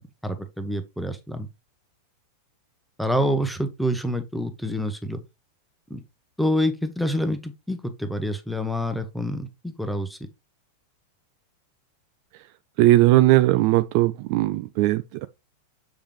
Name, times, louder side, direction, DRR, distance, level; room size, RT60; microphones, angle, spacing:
voice 1, 0.2-1.5 3.0-5.2 5.9-6.0 6.4-10.2, equal, ahead, 1.1 m, -27 dB
voice 2, 12.8-15.3, right 16 dB, 45° right, 0.4 m, -19 dB
7.1 x 5.1 x 3.2 m
figure-of-eight pair, 90°, 0 cm